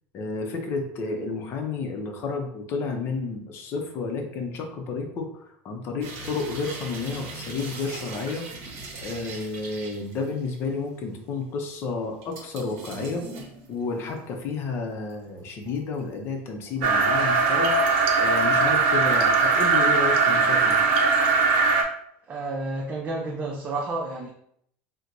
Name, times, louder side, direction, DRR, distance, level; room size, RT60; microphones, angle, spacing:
voice 1, 0.1-5.3 5.6-8.5 9.0-13.2 13.7-17.7 18.2-20.9, left 4 dB, 40° left, 4 dB, 0.6 m, -31 dB
sound 1, 6.0-10.8 11.1-11.2 12.2-14.4 14.8-16.1 16.6-17.8 18.2-18.7 19.0-19.1, right 3 dB, 55° right, 1.0 m, -41 dB
sound 2, 16.8-21.8, right 4 dB, 75° right, 0.6 m, -20 dB
voice 2, 22.3-24.3, right 2 dB, 25° right, -2 dB, 0.4 m, -30 dB
4.3 x 2.1 x 2.6 m, 0.69 s
supercardioid pair, 145°, 6 cm